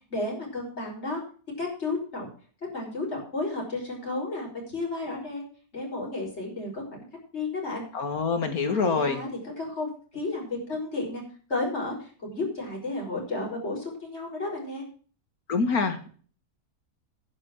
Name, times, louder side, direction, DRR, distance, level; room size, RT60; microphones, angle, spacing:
voice 1, 0.1-1.2 1.6-2.3 2.7-5.5 5.7-7.1 7.3-7.8 8.7-11.2 11.5-14.8, left 2 dB, 45° left, -2 dB, 5.9 m, -32 dB
voice 2, 7.9-9.2 15.5-16.1, left 4 dB, 70° left, 7 dB, 2.1 m, -25 dB
10.5 x 9.1 x 6.2 m, 0.42 s
omnidirectional pair, 1.6 m